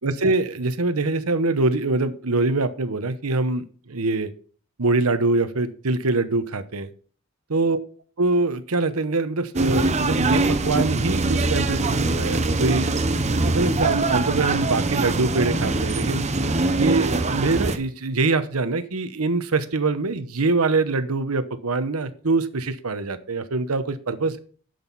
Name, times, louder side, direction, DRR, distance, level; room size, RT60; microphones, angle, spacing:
voice 1, 0.0-4.3 4.8-6.9 7.5-7.8 8.2-12.9 13.4-16.3 16.8-24.4, right 3 dB, 80° right, 11 dB, 1.0 m, -24 dB
sound 1, 9.5-17.8, right 2 dB, 30° right, 0.8 m, -23 dB
11.0 x 8.0 x 4.1 m, 0.43 s
head